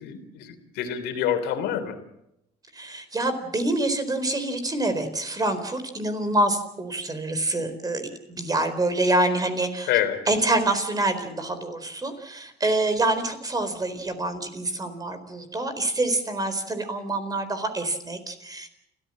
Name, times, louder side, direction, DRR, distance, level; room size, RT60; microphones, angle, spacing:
voice 1, 0.0-1.9 9.9-10.2, left 10 dB, 90° left, 7 dB, 3.5 m, -27 dB
voice 2, 2.7-8.0 8.3-9.9 10.3-18.7, right 2 dB, 20° right, 10 dB, 4.1 m, -26 dB
29.5 x 14.5 x 7.6 m, 0.82 s
cardioid pair, 110°, 17 cm